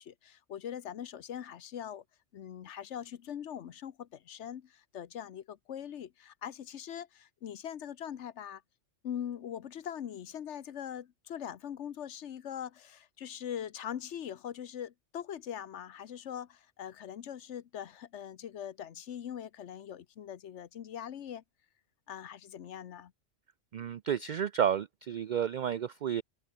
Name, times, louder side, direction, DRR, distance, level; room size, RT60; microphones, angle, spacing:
voice 1, 0.0-2.0 2.3-8.6 9.0-21.4 22.1-23.1, left 9 dB, 65° left, 1.1 m, -42 dB
voice 2, 23.7-26.2, right 9 dB, 55° right, 0.5 m, -31 dB
omnidirectional pair, 1.3 m